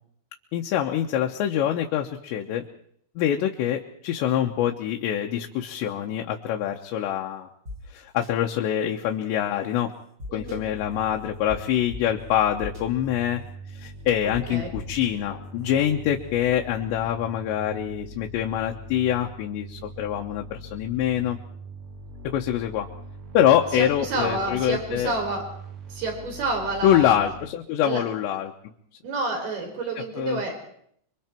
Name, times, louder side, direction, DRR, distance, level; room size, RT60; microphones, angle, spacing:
voice 1, 0.5-2.6 3.2-7.5 7.9-9.9 10.3-13.4 13.8-21.4 22.3-22.9 23.3-25.1 26.8-28.5 30.2-30.4, left 10 dB, 85° left, 2 dB, 3.3 m, -25 dB
sound 1, 7.7-7.8 8.2-8.3 10.2-10.6 11.5-11.6 11.9-12.0 12.6-12.8 14.3-14.4 14.7-15.1, left 3 dB, 25° right, 1.9 m, -36 dB
voice 2, 10.3-10.6 14.5-14.7 23.7-25.4 25.9-27.2 27.8-28.0 29.0-30.5, right 3 dB, 60° right, 1 dB, 6.7 m, -29 dB
sound 2, 10.4-27.5, equal, 80° right, 5.4 m, -42 dB
26.5 x 23.5 x 4.5 m, 0.66 s
omnidirectional pair, 5.0 m